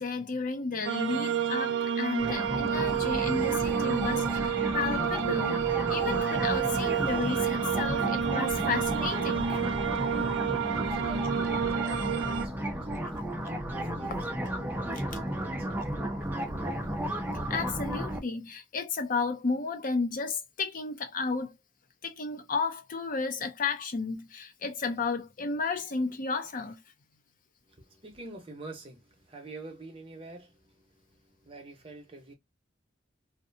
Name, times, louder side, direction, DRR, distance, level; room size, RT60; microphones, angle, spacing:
voice 1, 0.0-9.6 11.0-11.1 14.4-14.5 17.5-21.6 22.0-26.8, left 4 dB, 45° left, 0.5 m, -33 dB
sound 1, 0.8-12.4, right 8 dB, 85° right, 0.4 m, -29 dB
sound 2, 2.2-18.2, right 1 dB, 10° right, 0.5 m, -33 dB
voice 2, 10.7-13.2 13.7-15.9 27.6-32.3, right 2 dB, 30° right, 0.8 m, -47 dB
2.6 x 2.2 x 2.6 m
head